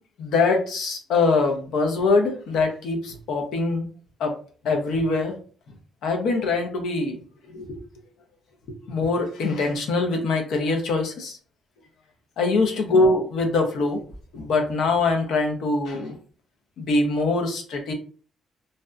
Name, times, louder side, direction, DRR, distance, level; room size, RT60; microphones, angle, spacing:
voice 1, 0.2-3.9 4.2-4.3 4.6-5.3 6.0-7.2 7.5-7.8 8.9-11.4 12.4-14.0 14.3-16.2 16.8-17.9, left 3 dB, 80° left, 4 dB, 0.6 m, -23 dB
2.7 x 2.1 x 2.3 m, 0.41 s
cardioid pair, 90°, 0 cm